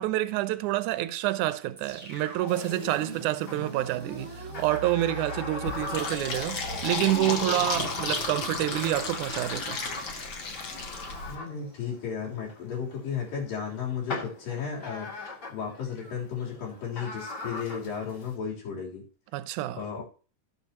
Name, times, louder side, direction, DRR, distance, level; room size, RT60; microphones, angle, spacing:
voice 1, 0.0-9.8 19.3-19.8, right 15 dB, 75° right, 2.0 m, -28 dB
sound 1, 1.8-12.0, right 2 dB, 20° right, 2.6 m, -42 dB
sound 2, 2.5-18.4, left 3 dB, 30° left, 2.8 m, -43 dB
Fill (with liquid), 5.7-11.4, left 4 dB, 50° left, 1.6 m, -33 dB
voice 2, 11.3-15.1 15.5-19.0 19.8-20.0, left 7 dB, 80° left, 5.2 m, -34 dB
18.0 x 7.2 x 2.9 m
omnidirectional pair, 4.0 m